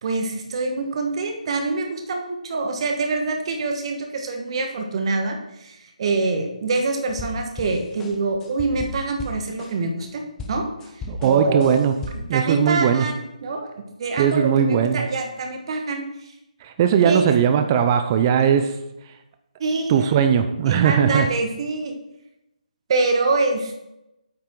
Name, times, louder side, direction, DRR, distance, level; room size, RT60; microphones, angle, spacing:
voice 1, 0.0-10.2 10.5-10.7 11.2-11.7 12.1-13.1 13.4-13.7 14.0-16.0 17.0-17.4 19.6-20.1 20.7-21.9 22.9-23.8, right 3 dB, 40° right, 4 dB, 1.4 m, -25 dB
sound 1, 7.1-10.1 10.4-12.4, left 2 dB, 10° left, 0.8 m, -35 dB
voice 2, 11.1-11.9 12.3-13.1 14.2-15.0 16.6-18.7 19.9-21.3, right 8 dB, 25° right, 8 dB, 0.5 m, -19 dB
8.9 x 5.7 x 3.8 m, 0.88 s
figure-of-eight pair, 150°, 4 cm